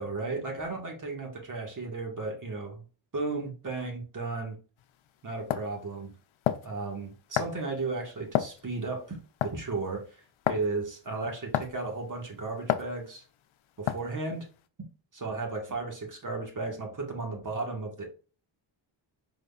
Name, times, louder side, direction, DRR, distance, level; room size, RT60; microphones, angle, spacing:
voice 1, 0.0-2.8 3.1-4.6 5.2-6.1 6.6-9.2 9.4-10.0 10.5-13.2 13.8-14.4 15.1-18.1, right 3 dB, 40° right, 1 dB, 1.5 m, -34 dB
sound 1, 4.8-4.9 5.5-5.7 6.4-6.7 7.4-7.6 8.3-8.6 9.4-9.7 10.5-10.7 11.5-11.8 12.7-12.9 13.9-14.2, left 11 dB, 70° left, 0.6 m, -28 dB
4.8 x 4.1 x 2.3 m, 0.37 s
cardioid pair, 80°, 49 cm